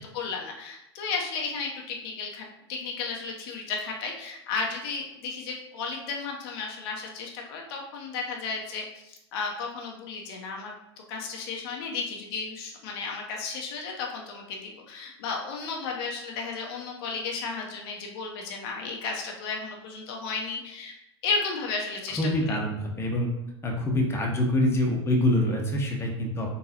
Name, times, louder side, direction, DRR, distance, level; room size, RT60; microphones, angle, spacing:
voice 1, 0.0-10.7 11.1-20.9 21.2-22.2 22.5-22.6, left 4 dB, 60° left, 1 dB, 0.7 m, -34 dB
voice 2, 22.2-23.3 23.6-26.5, left 1 dB, 15° left, -1 dB, 0.9 m, -25 dB
4.0 x 3.7 x 2.8 m, 0.86 s
hypercardioid pair, 95°, 14 cm